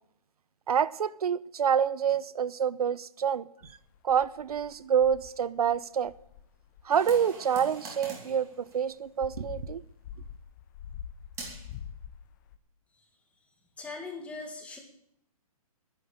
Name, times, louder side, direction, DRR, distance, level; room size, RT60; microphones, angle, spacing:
voice 1, 0.7-3.7 4.0-6.1 6.8-9.8, right 8 dB, 80° right, 0.8 m, -27 dB
sound 1, 3.6-5.4 5.7-5.8 6.0-6.9 8.9-12.6, left 9 dB, 30° left, 0.9 m, -45 dB
sound 2, 6.9-9.3 11.3-11.7, right 3 dB, 15° right, 2.9 m, -44 dB
voice 2, 13.8-14.8, left 3 dB, 5° left, 1.9 m, -40 dB
10.5 x 10.5 x 7.9 m
hypercardioid pair, 160°, 19 cm